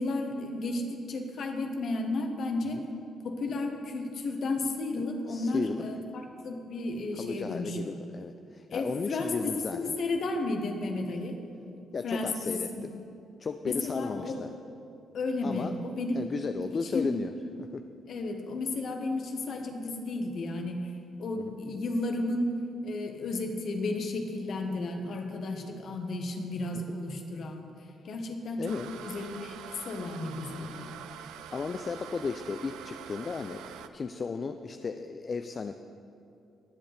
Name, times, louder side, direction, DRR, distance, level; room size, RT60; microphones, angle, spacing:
voice 1, 0.0-2.8 3.2-8.0 8.7-11.4 12.0-12.9 13.6-14.4 15.1-16.3 16.8-17.2 18.1-22.5 22.8-27.7 28.0-29.5 29.8-30.9, left 2 dB, 65° left, 4 dB, 1.4 m, -33 dB
voice 2, 5.0-5.8 7.2-9.9 11.9-12.9 13.4-14.5 15.4-15.8 16.1-17.3 21.4-21.5 26.9-27.0 28.6-28.9 30.6-30.8 31.5-35.8, left 4 dB, 45° left, 7 dB, 0.5 m, -35 dB
sound 1, 28.6-33.9, right 9 dB, 80° right, 0.5 m, -45 dB
20.5 x 7.8 x 3.4 m, 2.7 s
supercardioid pair, 55°, 0 cm